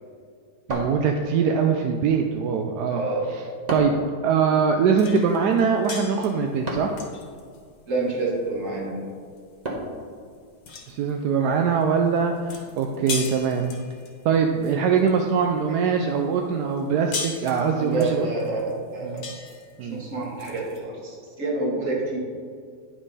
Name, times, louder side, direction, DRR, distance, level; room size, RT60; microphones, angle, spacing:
sound 1, 0.7-1.6 3.7-4.1 6.7-7.1 9.7-10.1, right 1 dB, 25° right, 1.0 m, -31 dB
voice 1, 0.7-3.0 3.3-3.4 3.7-3.9 4.2-6.9 10.9-13.7 14.2-18.3 19.0-19.2 19.8-20.0, right 6 dB, 70° right, 3 dB, 1.0 m, -22 dB
voice 2, 2.9-3.3 7.9-9.0 15.8-16.0 17.8-19.3 19.8-22.2, right 2 dB, 45° right, -2 dB, 1.9 m, -28 dB
sound 2, 5.0-15.6 16.0-20.8, left 4 dB, 65° left, 1.7 m, -38 dB
10.0 x 5.5 x 4.0 m, 2.1 s
omnidirectional pair, 2.1 m